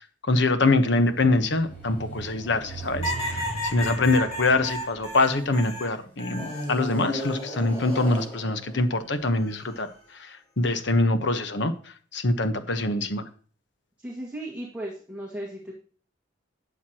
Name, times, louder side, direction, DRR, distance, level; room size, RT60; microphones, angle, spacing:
voice 1, 0.0-11.7 12.1-13.2, left 2 dB, 65° left, 9 dB, 1.1 m, -24 dB
sound 1, 0.9-5.6 6.3-9.7, right 1 dB, 10° left, 4.6 m, -38 dB
sound 2, 3.0-6.7 7.2-8.0 9.4-9.8, equal, 35° left, 3.5 m, -34 dB
voice 2, 14.0-15.7, right 1 dB, 5° right, -4 dB, 1.9 m, -36 dB
12.5 x 8.1 x 2.9 m, 0.43 s
head